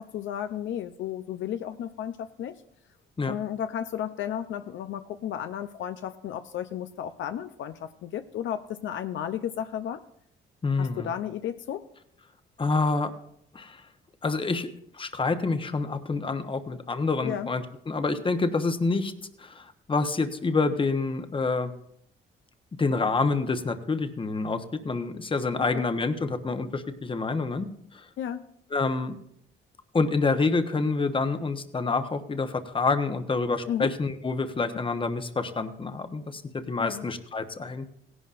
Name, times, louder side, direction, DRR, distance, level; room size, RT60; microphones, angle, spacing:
voice 1, 0.0-2.5 3.3-10.0 10.8-11.8 17.2-17.5 25.6-25.9 28.2-28.5 33.7-33.9 36.8-37.1, left 10 dB, 70° left, 9 dB, 0.6 m, -33 dB
voice 2, 10.6-11.1 12.6-13.1 13.5-13.8 14.2-14.7 14.9-19.1 19.4-21.7 22.8-27.7 27.9-28.1 28.7-29.2 29.9-37.9, left 3 dB, 25° left, 8 dB, 1.0 m, -27 dB
17.0 x 11.0 x 2.6 m, 0.71 s
cardioid pair, 90°, 20 cm